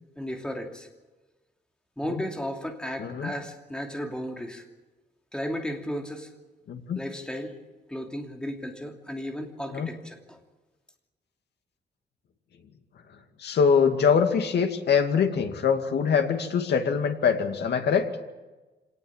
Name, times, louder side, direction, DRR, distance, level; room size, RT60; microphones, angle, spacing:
voice 1, 0.2-0.9 2.0-4.6 5.3-6.3 6.9-7.6 7.9-10.4, equal, 5° left, 3 dB, 2.8 m, -34 dB
voice 2, 3.0-3.3 6.7-7.0 9.7-9.9 13.4-18.1, left 6 dB, 75° left, 6 dB, 2.5 m, -23 dB
26.0 x 18.5 x 7.4 m, 1.2 s
wide cardioid pair, 155°, 17 cm